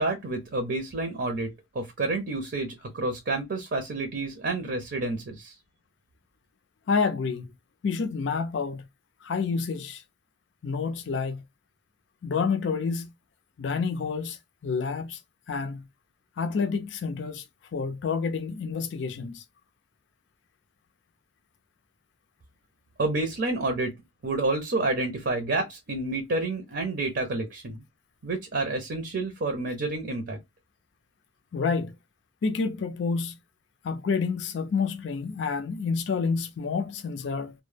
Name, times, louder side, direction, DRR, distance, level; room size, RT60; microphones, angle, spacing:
voice 1, 0.0-5.5 23.0-23.9 24.2-27.8 28.2-30.4, right 2 dB, 65° right, 0.6 m, -29 dB
voice 2, 6.9-7.5 7.8-8.8 9.2-10.0 10.6-11.4 12.2-13.1 13.6-14.4 14.6-15.2 15.5-15.8 16.4-17.4 17.7-19.4 31.5-31.9 32.4-33.3 33.8-37.5, left 5 dB, 85° left, 0.4 m, -28 dB
2.2 x 2.0 x 3.2 m
head